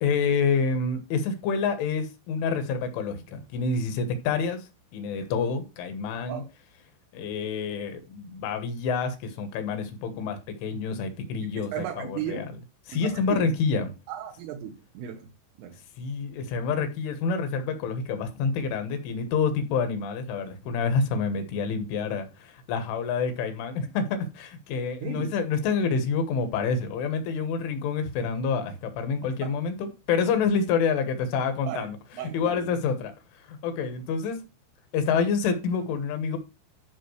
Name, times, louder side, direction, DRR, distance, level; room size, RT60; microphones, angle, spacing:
voice 1, 0.0-6.4 7.1-12.5 12.9-13.9 16.0-32.0 32.3-33.1 33.5-34.4 34.9-36.4, left 5 dB, 75° left, 3.5 m, -28 dB
voice 2, 11.4-12.5 12.9-13.5 14.1-15.3 15.6-15.8 25.0-25.3 31.7-31.9 32.1-32.8, right 9 dB, 80° right, 3.4 m, -36 dB
13.0 x 5.5 x 3.2 m
omnidirectional pair, 6.0 m